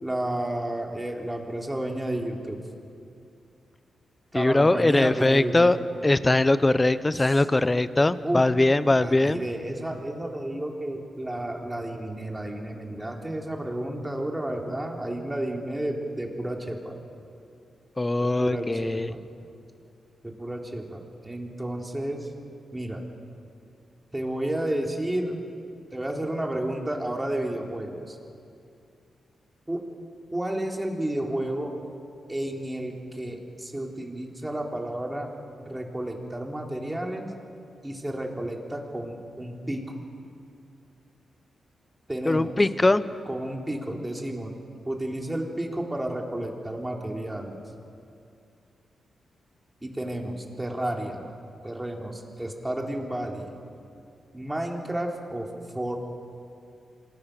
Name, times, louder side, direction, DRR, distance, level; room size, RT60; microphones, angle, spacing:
voice 1, 0.0-2.6 4.3-5.7 8.2-8.4 9.0-16.9 18.2-19.2 20.2-22.3 22.7-23.0 24.1-25.4 25.9-28.2 29.7-29.8 30.3-31.7 32.3-35.3 35.6-37.3 37.8-39.9 42.1-42.6 43.3-44.5 44.8-47.6 49.8-51.3 51.6-53.5 54.3-55.5 55.7-56.0, right 1 dB, 15° right, 1 dB, 3.7 m, -31 dB
voice 2, 4.3-5.8 6.0-9.4 18.0-19.1 42.2-43.0, left 2 dB, 20° left, 14 dB, 0.9 m, -21 dB
27.0 x 19.5 x 6.7 m, 2.5 s
cardioid pair, 65°, 0 cm